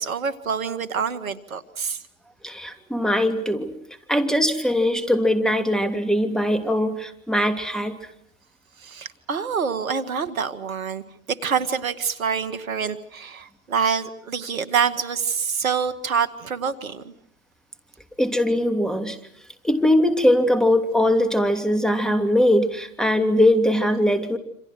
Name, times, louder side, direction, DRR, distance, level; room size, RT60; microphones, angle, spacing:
voice 1, 0.0-2.0 8.8-17.1, right 6 dB, 85° right, 13 dB, 2.0 m, -26 dB
voice 2, 2.4-3.7 4.1-8.0 18.2-19.2 19.6-24.4, left 1 dB, ahead, 7 dB, 3.0 m, -21 dB
28.0 x 26.5 x 6.2 m, 0.67 s
hypercardioid pair, 95°, 40 cm